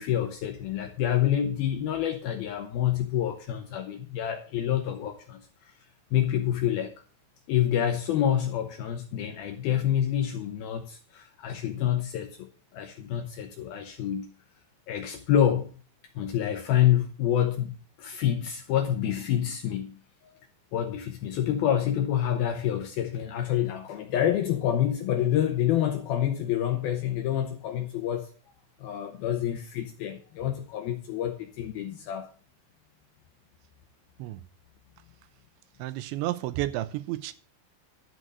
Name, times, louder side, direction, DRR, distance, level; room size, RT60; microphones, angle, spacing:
voice 1, 0.0-5.7 6.1-6.9 7.5-14.3 14.9-15.8 16.2-17.7 18.0-20.3 20.7-28.3 28.8-32.3, left 10 dB, 80° left, 2.2 m, -27 dB
voice 2, 35.8-37.3, right 15 dB, 80° right, 2.9 m, -31 dB
12.5 x 6.3 x 6.7 m
omnidirectional pair, 5.6 m